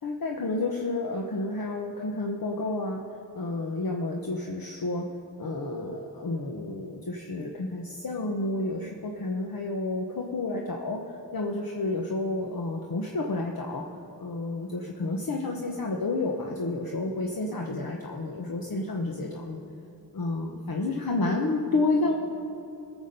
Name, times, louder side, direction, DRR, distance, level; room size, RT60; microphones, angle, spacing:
voice 1, 0.0-3.0 3.3-5.1 5.4-13.9 14.2-19.6 20.1-22.3, left 2 dB, 65° left, 0 dB, 1.0 m, -30 dB
19.0 x 7.2 x 5.3 m, 2.9 s
wide cardioid pair, 55°, 38 cm